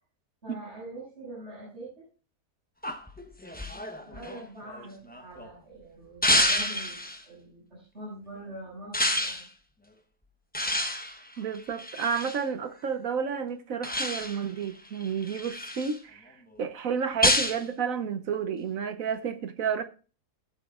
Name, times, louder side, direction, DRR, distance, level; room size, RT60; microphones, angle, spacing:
voice 1, 0.4-2.0 4.1-9.4, right 1 dB, 40° right, 7.0 m, -44 dB
sound 1, 2.8-5.5 6.2-7.2 8.9-9.5 10.5-12.4 13.8-14.5 15.0-16.0 17.2-17.6, left 1 dB, 10° left, 0.6 m, -28 dB
voice 2, 11.4-19.8, right 6 dB, 60° right, 1.2 m, -31 dB
19.0 x 8.1 x 2.4 m
omnidirectional pair, 1.7 m